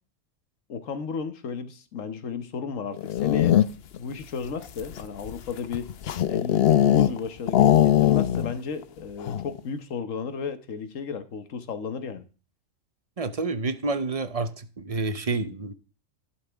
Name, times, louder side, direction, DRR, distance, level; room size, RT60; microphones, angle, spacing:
voice 1, 0.7-3.6 4.0-5.9 6.3-12.2, left 5 dB, 75° left, 1.4 m, -34 dB
sound 1, 2.9-4.0 4.6-7.2 7.5-8.6 8.8-8.9 9.2-9.6, left 11 dB, 55° left, 0.8 m, -21 dB
voice 2, 13.2-15.7, right 3 dB, 35° right, 0.8 m, -29 dB
12.0 x 11.0 x 3.5 m
omnidirectional pair, 1.4 m